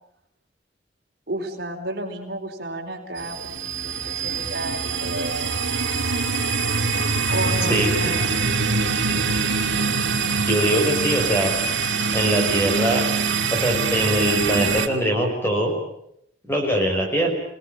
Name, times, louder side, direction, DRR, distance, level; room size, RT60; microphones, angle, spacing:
voice 1, 1.3-5.4 7.3-8.3, right 1 dB, 60° right, 2 dB, 4.5 m, -31 dB
sound 1, 3.2-14.9, right 4 dB, 85° right, 2.3 m, -24 dB
voice 2, 7.7-8.1 10.4-11.5 12.1-13.0 13.5-15.7 16.5-17.3, equal, 10° left, 2 dB, 5.5 m, -22 dB
27.5 x 19.0 x 9.0 m, 0.77 s
head